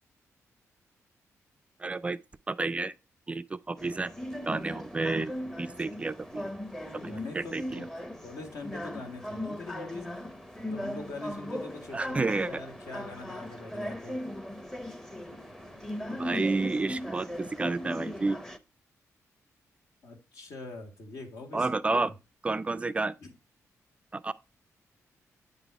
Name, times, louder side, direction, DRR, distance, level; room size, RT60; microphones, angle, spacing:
voice 1, 1.8-2.2 2.5-2.9 3.3-4.1 4.4-6.5 7.3-7.8 11.9-12.6 16.2-18.4 21.5-22.1 22.4-23.1 24.1-24.3, right 3 dB, 20° right, 0.3 m, -30 dB
sound 1, 3.8-18.6, left 1 dB, 5° left, 0.6 m, -38 dB
voice 2, 6.9-7.9 8.2-10.3 10.6-14.2 16.1-16.5 20.0-21.7 21.9-22.0 23.2-23.3, left 3 dB, 75° left, 1.8 m, -43 dB
8.8 x 4.0 x 4.6 m
cardioid pair, 125°, 6 cm